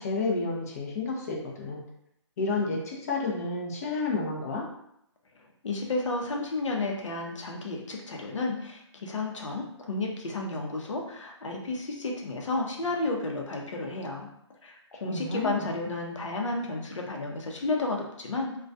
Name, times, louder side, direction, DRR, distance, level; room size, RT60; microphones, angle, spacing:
voice 1, 0.0-1.8 2.4-4.6 15.0-15.7, left 3 dB, 30° left, -2 dB, 0.5 m, -30 dB
voice 2, 5.6-14.3 14.6-18.6, left 2 dB, 85° left, 1 dB, 0.6 m, -32 dB
2.3 x 2.2 x 2.5 m, 0.76 s
hypercardioid pair, 160°, 15 cm